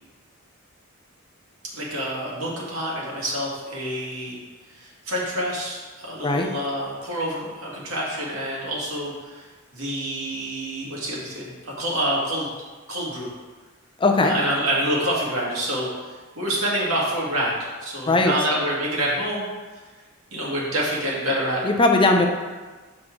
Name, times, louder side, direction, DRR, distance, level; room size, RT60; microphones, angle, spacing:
voice 1, 1.7-4.4 4.7-9.4 9.7-12.5 12.9-13.3 14.2-19.5 20.3-21.6, right 1 dB, 80° right, -4 dB, 2.0 m, -27 dB
voice 2, 14.0-14.3 18.1-18.3 21.6-22.3, left 2 dB, 25° left, 2 dB, 0.6 m, -18 dB
6.1 x 5.9 x 3.8 m, 1.3 s
head